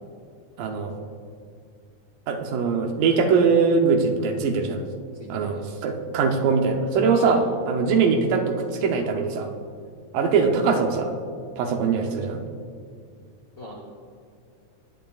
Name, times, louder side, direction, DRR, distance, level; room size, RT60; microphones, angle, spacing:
voice 1, 0.6-0.9 2.3-4.8 5.3-9.5 10.1-11.2 11.6-12.4, right 5 dB, 85° right, 3 dB, 2.6 m, -22 dB
voice 2, 5.1-5.6 7.2-7.4 13.6-13.7, left 1 dB, 55° left, -4 dB, 0.9 m, -39 dB
18.0 x 10.5 x 2.5 m, 2.2 s
omnidirectional pair, 3.8 m